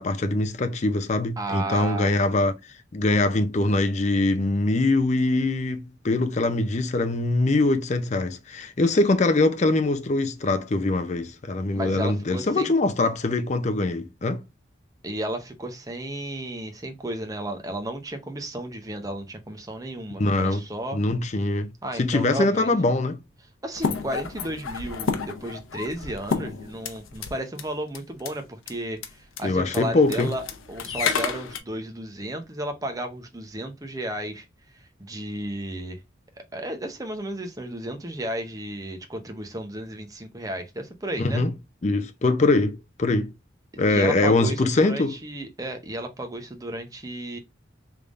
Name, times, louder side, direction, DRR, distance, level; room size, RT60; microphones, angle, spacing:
voice 1, 0.0-2.5 2.9-14.4 20.2-20.6 20.9-21.7 22.0-23.2 29.4-30.3 41.2-41.5 41.8-43.3 43.8-45.1, left 2 dB, 35° left, 0.5 m, -23 dB
voice 2, 1.4-2.1 11.7-12.7 15.0-21.0 21.8-22.7 23.6-30.4 30.7-34.5 35.0-36.0 36.5-41.4 43.7-47.4, right 1 dB, 20° right, 0.7 m, -33 dB
sound 1, 23.7-27.3 27.6-27.7 27.9-28.3 28.7-28.8 29.0-29.1 29.4-29.5 29.7-31.6, left 5 dB, 90° left, 0.7 m, -30 dB
3.5 x 3.4 x 2.4 m
head